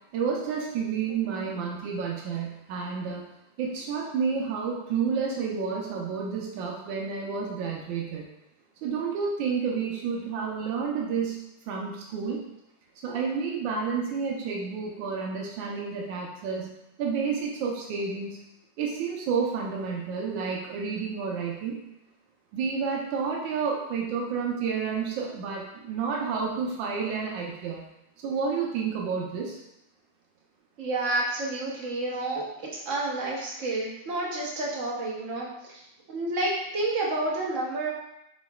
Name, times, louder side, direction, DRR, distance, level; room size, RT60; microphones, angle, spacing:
voice 1, 0.1-3.2 3.6-8.2 8.8-11.4 11.7-12.4 13.0-16.7 17.0-18.3 18.8-21.8 22.5-27.8 28.2-29.6, right 5 dB, 80° right, -2 dB, 1.4 m, -30 dB
voice 2, 30.8-35.8 36.1-37.9, right 2 dB, 55° right, -3 dB, 1.0 m, -30 dB
4.7 x 4.2 x 2.3 m, 0.85 s
omnidirectional pair, 2.1 m